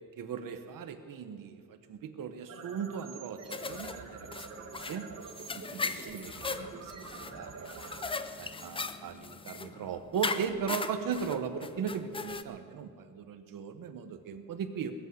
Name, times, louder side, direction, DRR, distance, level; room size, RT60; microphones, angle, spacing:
voice 1, 0.2-5.1 5.5-7.9 8.4-14.9, right 7 dB, 65° right, 9 dB, 1.1 m, -38 dB
sound 1, 2.4-9.4, right 5 dB, 45° right, 1.4 m, -47 dB
sound 2, 3.5-12.4, left 4 dB, 15° left, 0.3 m, -39 dB
21.0 x 8.4 x 6.4 m, 2.3 s
wide cardioid pair, 180°, 36 cm